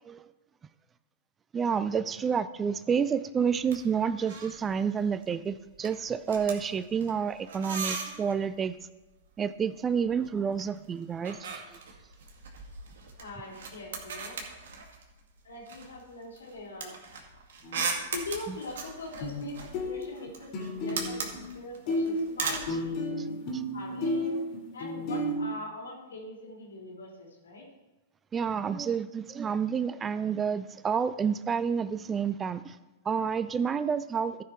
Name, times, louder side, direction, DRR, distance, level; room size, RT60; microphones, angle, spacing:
voice 1, 1.5-8.8 9.4-11.8 18.5-18.6 23.5-23.6 28.3-32.8 33.0-34.4, right 6 dB, 20° right, 14 dB, 0.4 m, -29 dB
sound 1, 3.5-3.8 4.0-4.6 4.9-5.2 5.5-8.4 9.6-10.7 10.9-15.2 15.7-22.7, right 5 dB, 65° right, 2.1 m, -38 dB
voice 2, 13.2-14.4 15.4-16.9 18.1-23.2 23.7-24.4 24.7-27.6, left 2 dB, 75° left, -1 dB, 3.5 m, -42 dB
sound 2, 17.6-17.8 19.2-19.5 19.7-21.6 21.9-25.4, left 1 dB, 40° left, 2.4 m, -32 dB
14.0 x 5.8 x 4.3 m, 1.0 s
hypercardioid pair, 105°, 0 cm